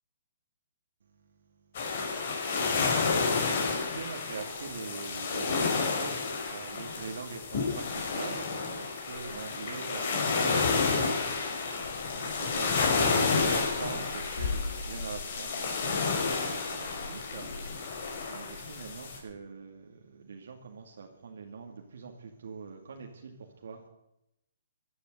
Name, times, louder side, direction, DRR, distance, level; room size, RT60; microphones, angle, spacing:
sound 1, 1.7-19.2, left 4 dB, 50° left, 5.1 m, -30 dB
voice 1, 3.3-23.8, right 5 dB, 70° right, 2 dB, 2.3 m, -44 dB
16.0 x 11.5 x 7.8 m, 0.85 s
hypercardioid pair, 155°, 0 cm